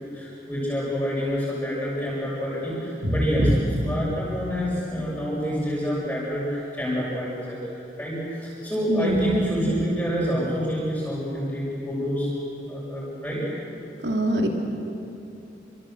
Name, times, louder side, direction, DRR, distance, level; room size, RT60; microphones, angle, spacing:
voice 1, 0.0-12.3 12.7-13.5, equal, 10° left, -7 dB, 6.2 m, -28 dB
voice 2, 3.0-3.5 8.9-9.5 14.0-14.5, right 1 dB, 75° right, 2 dB, 2.9 m, -23 dB
29.0 x 26.5 x 7.8 m, 2.8 s
head